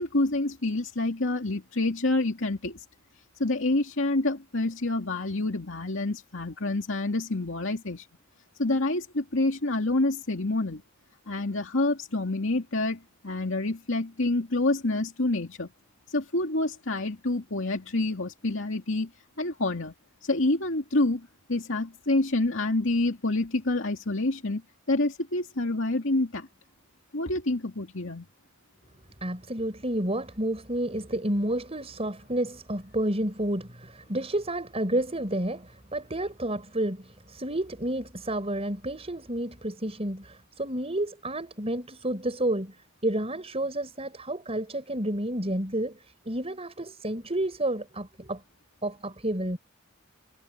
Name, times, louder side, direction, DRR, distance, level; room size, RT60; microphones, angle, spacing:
voice 1, 0.0-2.8 3.4-8.1 8.6-10.8 11.3-15.7 16.1-19.1 19.4-19.9 20.2-24.6 24.9-26.5 27.1-28.3, left 2 dB, 65° left, 2.5 m, -27 dB
voice 2, 29.2-42.8 43.0-46.0 46.3-48.4 48.8-49.6, right 1 dB, 30° right, 5.7 m, -30 dB
head